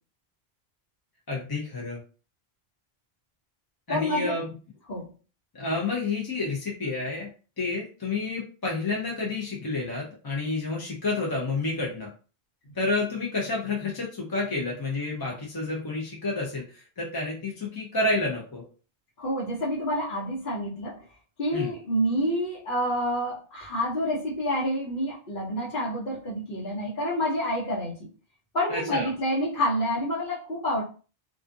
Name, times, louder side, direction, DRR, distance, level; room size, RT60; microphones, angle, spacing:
voice 1, 1.3-2.0 3.9-4.5 5.5-7.3 7.6-12.1 12.7-18.6 21.5-21.7 28.7-29.1, left 3 dB, 30° left, -3 dB, 0.4 m, -29 dB
voice 2, 3.9-4.4 4.9-5.1 19.2-21.0 21.4-27.9 28.5-30.8, equal, 60° left, -8 dB, 1.0 m, -28 dB
2.4 x 2.3 x 2.5 m, 0.36 s
omnidirectional pair, 1.0 m